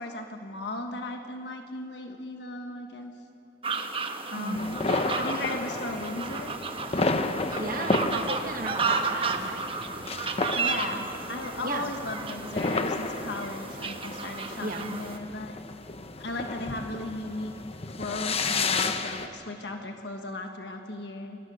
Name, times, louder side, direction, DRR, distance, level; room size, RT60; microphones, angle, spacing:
voice 1, 0.0-3.1 4.3-4.8 5.1-6.6 10.6-15.5 16.2-17.5 18.0-21.4, left 2 dB, 70° left, 4 dB, 1.4 m, -36 dB
sound 1, 3.6-15.2, right 4 dB, 30° right, 1.1 m, -33 dB
voice 2, 4.4-4.8 7.5-9.7 11.6-11.9 14.6-15.0, right 2 dB, 55° right, 5 dB, 1.4 m, -35 dB
sound 2, 4.5-19.3, left 3 dB, 35° left, 0.9 m, -32 dB
26.0 x 19.5 x 6.4 m, 2.8 s
head